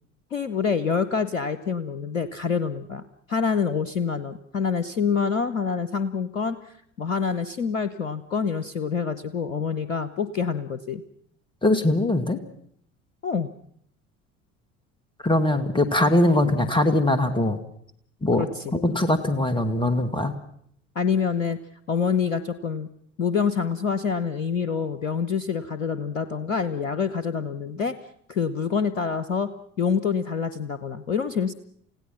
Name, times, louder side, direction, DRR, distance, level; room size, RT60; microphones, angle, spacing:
voice 1, 0.3-3.0 3.3-11.0 13.2-13.5 18.4-18.7 20.9-21.6 21.9-22.9 23.2-27.9 28.3-29.5 29.8-31.5, left 6 dB, 80° left, 13 dB, 1.0 m, -26 dB
voice 2, 11.6-12.4 15.2-17.6 18.2-18.4 18.7-20.3, left 1 dB, 10° left, 10 dB, 2.3 m, -21 dB
30.0 x 16.5 x 5.9 m, 0.67 s
figure-of-eight pair, 65°, 40 cm